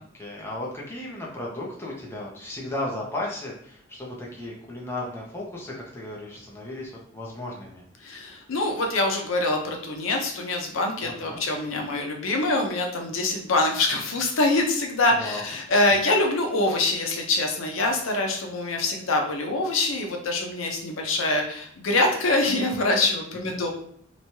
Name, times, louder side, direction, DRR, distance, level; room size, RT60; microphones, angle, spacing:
voice 1, 0.2-7.8 11.0-11.4 15.1-15.4 23.5-23.6, left 1 dB, 10° left, -3 dB, 0.5 m, -35 dB
voice 2, 8.0-23.7, left 2 dB, 75° left, 2 dB, 0.6 m, -24 dB
3.0 x 2.2 x 2.7 m, 0.64 s
head